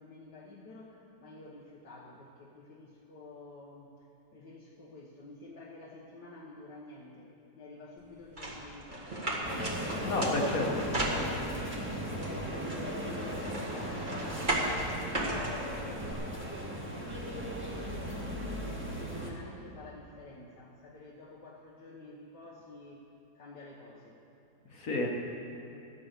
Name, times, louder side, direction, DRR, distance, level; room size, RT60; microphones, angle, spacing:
voice 1, 0.0-4.1 4.3-9.2 9.7-10.3 10.6-11.2 11.5-16.1 16.7-23.1 23.4-24.2, left 2 dB, 65° left, -2 dB, 1.8 m, -49 dB
sound 1, 8.4-11.7 12.2-16.1, right 1 dB, 25° right, 1.9 m, -35 dB
sound 2, 9.4-19.3, equal, 5° right, 1.7 m, -37 dB
voice 2, 10.1-10.8 24.7-25.1, left 2 dB, 50° left, 0 dB, 1.8 m, -30 dB
14.0 x 10.0 x 6.7 m, 2.9 s
omnidirectional pair, 2.0 m